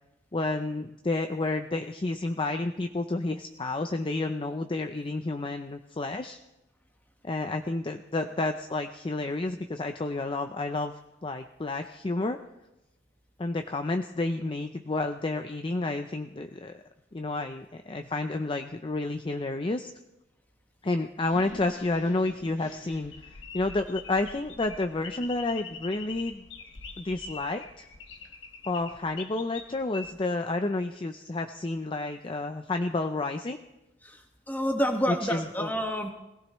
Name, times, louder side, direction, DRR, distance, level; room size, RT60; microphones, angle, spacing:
voice 1, 0.3-6.4 7.2-10.9 11.2-12.4 13.4-16.8 17.1-19.9 20.8-26.4 27.0-27.9 28.7-33.6 35.1-35.7, left 2 dB, 30° left, 6 dB, 0.5 m, -30 dB
sound 1, 21.2-30.1, left 4 dB, 90° left, 1.4 m, -44 dB
voice 2, 34.5-36.1, equal, 10° left, 3 dB, 1.5 m, -28 dB
21.0 x 16.0 x 3.1 m, 0.94 s
head